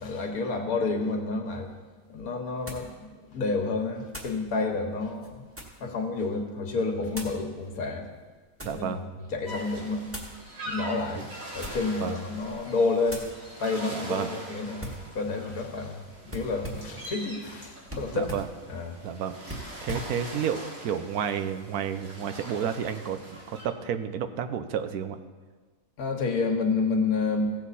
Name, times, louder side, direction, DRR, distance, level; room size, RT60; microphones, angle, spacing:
voice 1, 0.0-1.7 2.1-5.5 5.8-8.1 8.7-8.9 9.3-10.1 10.7-11.3 11.5-13.3 13.6-18.3 18.7-19.0 26.0-27.6, left 3 dB, 75° left, 3 dB, 1.7 m, -29 dB
sound 1, 1.5-1.6 2.7-2.9 4.1-4.4 5.1-5.9 7.1-7.4 8.2-8.9 10.1-10.4 11.5-12.0 12.4-12.6 13.1-13.4 14.8-15.1 16.3-17.0 17.9-18.5 19.4-20.1, equal, 10° right, 1.4 m, -40 dB
voice 2, 8.6-9.0 12.0-12.2 13.9-14.4 18.1-18.5 19.0-19.4 19.8-25.2, right 8 dB, 80° right, 10 dB, 1.2 m, -31 dB
sound 2, 9.4-23.6, equal, 65° right, 2.8 m, -43 dB
16.0 x 7.3 x 4.2 m, 1.4 s
omnidirectional pair, 1.6 m